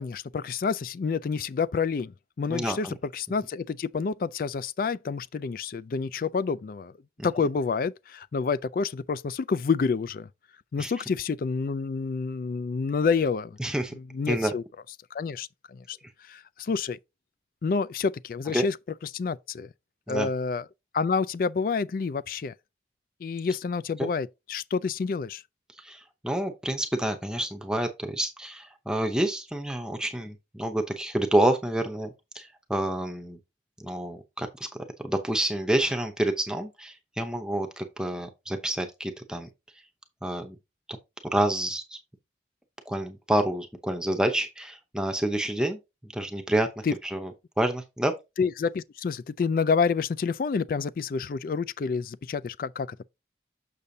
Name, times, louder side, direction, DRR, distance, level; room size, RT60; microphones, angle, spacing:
voice 1, 0.0-2.9 3.1-6.9 7.2-10.3 10.7-13.6 13.9-14.6 15.1-16.0 16.3-17.0 17.6-18.8 19.1-19.7 20.1-20.6 20.9-22.5 23.2-25.4 46.9-47.0 48.4-53.0, left 5 dB, 50° left, 0.3 m, -28 dB
voice 2, 2.5-2.9 7.2-7.3 10.8-10.9 13.6-13.9 14.3-14.5 18.5-18.6 20.1-20.3 24.0-24.1 25.8-33.4 33.8-34.7 35.0-39.5 40.2-40.6 41.3-42.0 42.9-47.3 47.6-48.1, right 1 dB, 5° right, 0.7 m, -28 dB
6.8 x 6.6 x 2.7 m
head